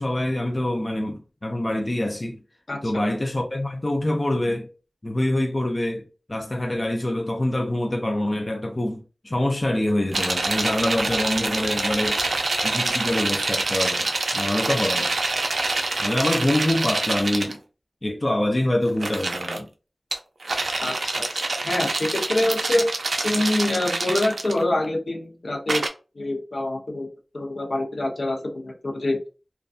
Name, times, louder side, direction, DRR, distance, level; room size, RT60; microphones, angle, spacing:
voice 1, 0.0-2.4 2.8-4.7 5.0-12.2 12.6-15.1 16.0-17.6 18.0-19.7, left 1 dB, 35° left, 0.4 m, -25 dB
sound 1, 10.1-17.5 18.9-19.6 20.1-24.9 25.7-25.9, right 2 dB, 90° right, 0.3 m, -26 dB
voice 2, 20.8-21.3 21.6-22.9 23.2-25.8 26.1-27.1 27.3-29.2, left 1 dB, 75° left, 0.6 m, -25 dB
2.5 x 2.2 x 2.4 m
wide cardioid pair, 70°, 0 cm